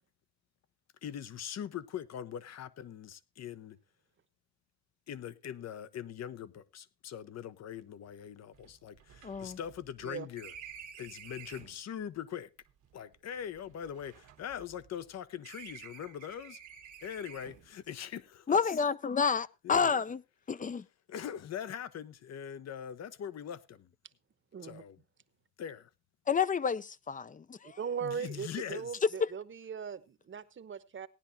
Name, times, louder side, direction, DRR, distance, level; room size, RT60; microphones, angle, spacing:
voice 1, 1.0-3.8 5.1-10.5 11.0-12.5 12.9-16.6 17.0-18.6 19.6-19.9 21.1-23.8 24.6-25.0 25.6-25.8 28.0-29.0, left 9 dB, 60° left, 0.9 m, -42 dB
sound 1, 7.7-7.8 8.1-8.2 8.5-11.8 12.7-15.1 15.4-17.7, right 8 dB, 80° right, 1.5 m, -51 dB
voice 2, 9.2-9.6 18.5-20.2 20.5-20.8 26.3-27.8 29.2-29.3, left 6 dB, 25° left, 0.5 m, -29 dB
voice 3, 24.5-24.8 27.6-31.1, right 7 dB, 40° right, 1.0 m, -39 dB
18.0 x 10.5 x 2.6 m
cardioid pair, 90°, 30 cm